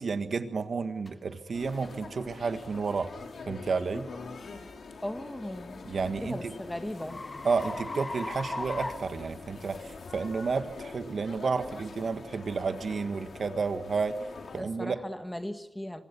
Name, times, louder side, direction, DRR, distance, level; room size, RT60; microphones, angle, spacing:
voice 1, 0.0-3.1 3.5-4.1 5.8-6.6 7.4-14.2 14.5-15.0, right 5 dB, 60° right, 9 dB, 1.6 m, -31 dB
sound 1, 1.1-1.2 1.7-1.9 2.5-2.7 5.4-9.9, left 2 dB, 25° left, 1.9 m, -39 dB
sound 2, 1.5-14.6, left 4 dB, 70° left, 3.7 m, -44 dB
voice 2, 5.0-5.9 6.2-7.2 14.6-16.0, left 1 dB, 10° left, 8 dB, 1.5 m, -37 dB
26.5 x 25.5 x 7.0 m, 0.91 s
wide cardioid pair, 165°, 0 cm